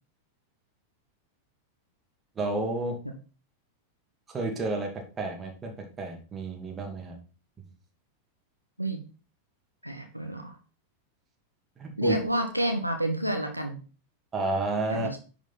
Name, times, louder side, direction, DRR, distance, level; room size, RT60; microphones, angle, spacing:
voice 1, 2.4-3.0 4.3-7.2 11.8-12.2 14.3-15.1, right 2 dB, 20° right, 1 dB, 2.6 m, -31 dB
voice 2, 9.8-10.5 12.0-13.8 14.9-15.2, right 1 dB, 90° right, 4 dB, 1.3 m, -29 dB
10.5 x 5.3 x 4.2 m, 0.35 s
figure-of-eight pair, 90°, 0 cm